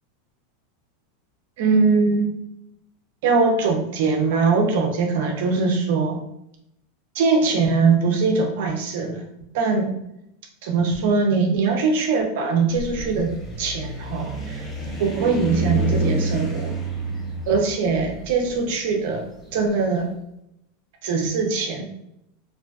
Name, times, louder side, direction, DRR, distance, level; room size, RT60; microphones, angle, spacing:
voice 1, 1.6-2.4 3.2-6.2 7.1-9.2 9.5-9.9 10.6-14.7 15.0-16.8 17.5-19.3 19.5-20.1 21.0-21.9, right 4 dB, 70° right, 2 dB, 0.4 m, -21 dB
sound 1, 12.7-19.8, right 2 dB, 15° left, 0.8 m, -29 dB
2.5 x 2.2 x 2.4 m, 0.78 s
hypercardioid pair, 115°, 0 cm